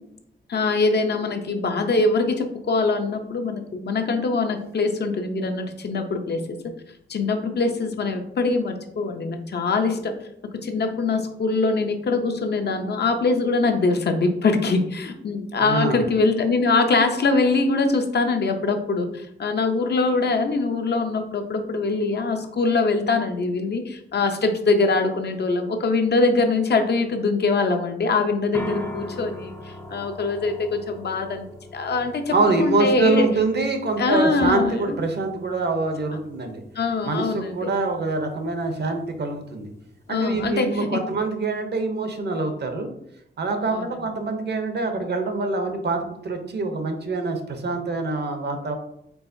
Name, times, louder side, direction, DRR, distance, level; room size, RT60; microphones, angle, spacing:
voice 1, 0.5-6.6 7.1-10.1 10.6-31.4 31.7-33.3 34.0-35.0 36.8-37.7 40.1-41.0 43.7-43.8, left 3 dB, 55° left, 5 dB, 0.5 m, -23 dB
voice 2, 15.6-16.0 32.3-36.6 37.0-39.7 40.1-42.9 43.4-48.8, right 3 dB, 55° right, 5 dB, 0.7 m, -25 dB
sound 1, 28.5-40.3, left 1 dB, 10° left, 0.5 m, -41 dB
4.6 x 4.0 x 2.6 m, 0.75 s
wide cardioid pair, 155°, 20 cm